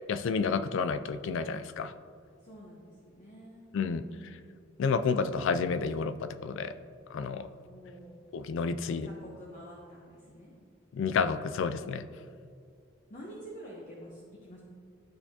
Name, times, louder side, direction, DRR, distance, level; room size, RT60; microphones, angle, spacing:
voice 1, 0.0-1.9 3.7-4.0 4.8-6.7 7.1-7.5 8.3-9.1 10.9-12.1, left 5 dB, 65° left, 12 dB, 0.3 m, -30 dB
voice 2, 2.4-4.4 7.6-8.2 8.9-10.5 13.1-14.6, equal, 35° left, -4 dB, 1.0 m, -48 dB
12.5 x 4.4 x 2.8 m, 2.3 s
head